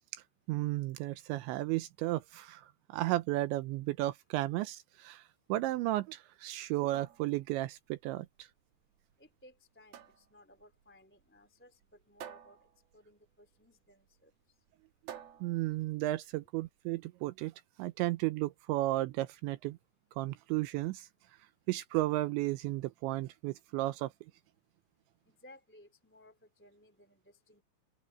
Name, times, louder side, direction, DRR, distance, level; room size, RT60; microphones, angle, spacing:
voice 1, 0.5-5.2 5.5-8.5 15.4-17.5 17.8-19.8 20.2-21.1 21.7-24.1, right 17 dB, 80° right, 2.8 m, -34 dB
sound 1, 6.6-16.6, right 10 dB, 60° right, 3.3 m, -54 dB
voice 2, 9.2-12.7 12.9-14.3 25.2-27.6, left 1 dB, 5° left, 1.5 m, -60 dB
open air
omnidirectional pair, 5.6 m